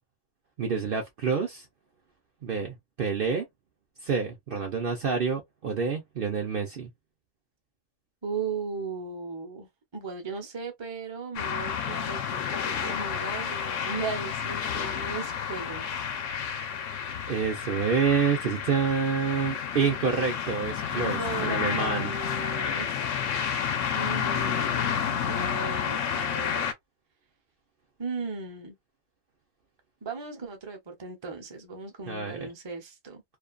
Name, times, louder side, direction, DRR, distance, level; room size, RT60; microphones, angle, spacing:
voice 1, 0.6-1.6 2.4-3.4 4.0-6.9 17.3-22.1 32.1-32.5, right 6 dB, 55° right, 0.7 m, -28 dB
voice 2, 8.2-15.9 20.9-23.0 23.3-26.7 28.0-28.7 30.0-33.2, right 4 dB, 25° right, 0.7 m, -37 dB
sound 1, 11.3-26.7, left 8 dB, 80° left, 1.0 m, -30 dB
2.6 x 2.3 x 2.3 m
omnidirectional pair, 1.3 m